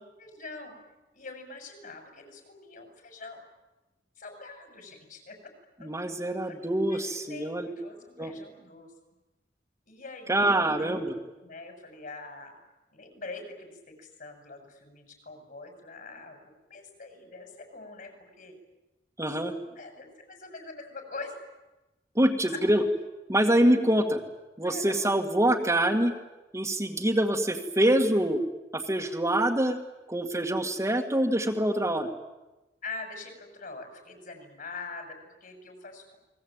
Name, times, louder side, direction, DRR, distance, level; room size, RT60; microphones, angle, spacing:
voice 1, 0.2-0.8 1.1-3.4 4.2-5.5 5.8-5.9 6.5-8.9 9.9-12.5 12.9-16.4 16.7-18.5 19.6-21.4 22.5-22.6 24.6-25.1 32.8-36.2, left 3 dB, 55° left, 5 dB, 6.9 m, -44 dB
voice 2, 5.8-7.7 8.2-8.3 10.3-11.1 19.2-19.5 22.2-22.8 23.3-24.2 24.6-26.1 26.5-28.4 28.7-29.8 30.1-32.1, right 1 dB, 15° right, 2 dB, 2.1 m, -25 dB
29.5 x 21.5 x 9.0 m, 1.0 s
head